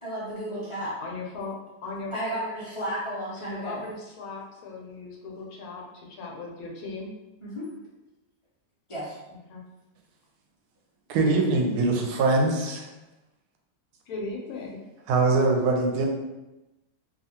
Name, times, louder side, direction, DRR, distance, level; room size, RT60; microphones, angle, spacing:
voice 1, 0.0-0.9 2.1-3.8 7.4-7.7 8.9-9.2, right 1 dB, 35° left, -10 dB, 0.5 m, -33 dB
voice 2, 1.0-2.1 3.4-7.1 9.3-9.6 14.1-14.8, left 3 dB, 75° left, -1 dB, 1.1 m, -38 dB
voice 3, 11.1-12.8 15.1-16.1, right 3 dB, 85° right, 2 dB, 1.1 m, -22 dB
2.6 x 2.4 x 2.8 m, 1.0 s
omnidirectional pair, 1.6 m